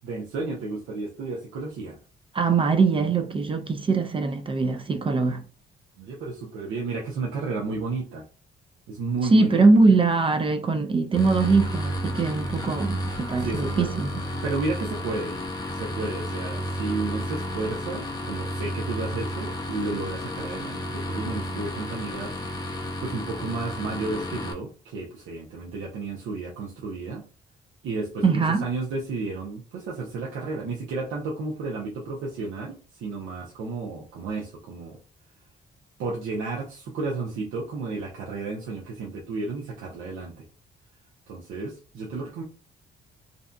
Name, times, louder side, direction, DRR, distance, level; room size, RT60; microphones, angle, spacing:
voice 1, 0.0-2.0 6.0-8.2 8.9-9.8 13.4-14.0 14.4-15.4 15.7-27.2 27.8-35.0 36.0-40.4 41.3-42.4, right 3 dB, 85° right, 0.6 m, -32 dB
voice 2, 2.3-5.4 9.3-14.2 28.2-28.6, right 4 dB, 25° right, 0.4 m, -22 dB
sound 1, 11.1-24.5, equal, 20° left, 0.6 m, -32 dB
2.6 x 2.2 x 2.4 m
cardioid pair, 90°, 20 cm